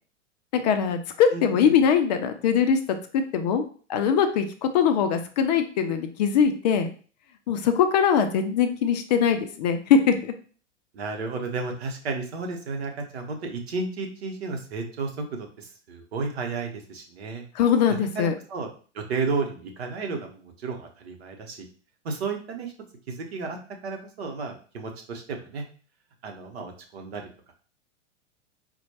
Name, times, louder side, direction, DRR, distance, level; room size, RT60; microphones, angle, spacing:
voice 1, 0.5-2.8 3.1-3.6 3.9-6.9 7.5-10.3 17.6-18.3, left 7 dB, 35° left, 7 dB, 0.5 m, -22 dB
voice 2, 1.3-1.8 10.9-17.4 18.1-18.7 18.9-21.7 22.0-22.7 23.1-23.6 23.8-25.6 26.2-27.2, right 4 dB, 55° right, 3 dB, 0.9 m, -32 dB
4.2 x 2.2 x 2.8 m, 0.40 s
figure-of-eight pair, 95°, 37 cm